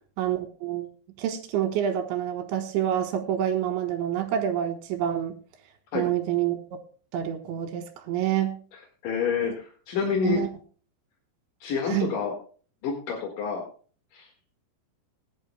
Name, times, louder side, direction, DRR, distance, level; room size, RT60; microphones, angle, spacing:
voice 1, 0.2-0.9 1.2-5.4 5.9-6.6 7.1-8.6 10.2-10.5 11.9-12.1, right 10 dB, 70° right, 6 dB, 3.6 m, -27 dB
voice 2, 8.7-10.4 11.6-12.3 12.8-13.6 14.1-14.3, left 6 dB, 55° left, 1 dB, 2.7 m, -28 dB
20.5 x 11.0 x 2.2 m, 0.41 s
omnidirectional pair, 5.8 m